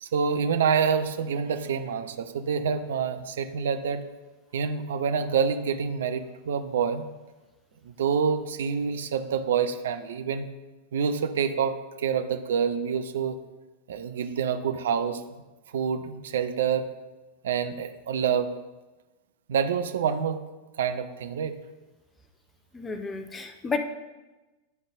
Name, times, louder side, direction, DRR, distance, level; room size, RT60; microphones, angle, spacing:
voice 1, 0.0-4.0 4.5-7.1 7.8-10.5 10.9-13.4 13.9-15.2 15.7-16.9 17.4-18.5 19.5-20.4 20.8-21.5, right 6 dB, 60° right, 9 dB, 0.5 m, -27 dB
voice 2, 22.7-23.8, left 4 dB, 15° left, 7 dB, 0.7 m, -31 dB
10.5 x 3.9 x 3.7 m, 1.1 s
figure-of-eight pair, 90°, 0 cm